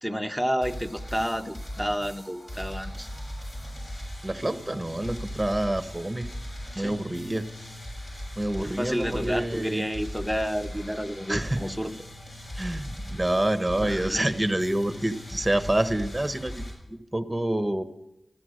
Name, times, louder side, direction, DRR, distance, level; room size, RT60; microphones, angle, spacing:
voice 1, 0.0-3.1 6.7-7.0 8.6-11.9 13.8-14.3, equal, 5° left, 7 dB, 1.1 m, -30 dB
sound 1, 0.6-16.7, equal, 45° left, 7.3 m, -39 dB
voice 2, 4.2-6.3 6.7-7.4 8.4-9.8 11.3-11.6 12.6-17.8, right 1 dB, 15° right, 9 dB, 1.2 m, -27 dB
14.5 x 12.5 x 6.5 m, 0.87 s
wide cardioid pair, 55°, 0 cm